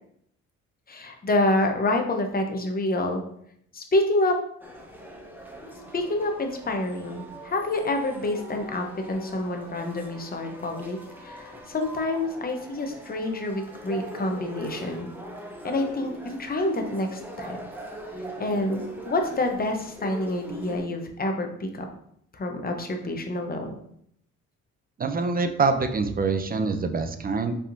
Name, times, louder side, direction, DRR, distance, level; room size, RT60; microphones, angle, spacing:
voice 1, 0.9-3.2 3.7-4.4 5.9-15.1 15.6-17.6 18.4-21.9 22.3-23.7, left 2 dB, 30° left, 4 dB, 0.8 m, -27 dB
sound 1, 4.6-20.8, right 1 dB, 5° right, 0.9 m, -41 dB
voice 2, 25.0-27.6, right 4 dB, 30° right, 7 dB, 0.5 m, -25 dB
5.2 x 3.5 x 2.7 m, 0.71 s
cardioid pair, 90°, 30 cm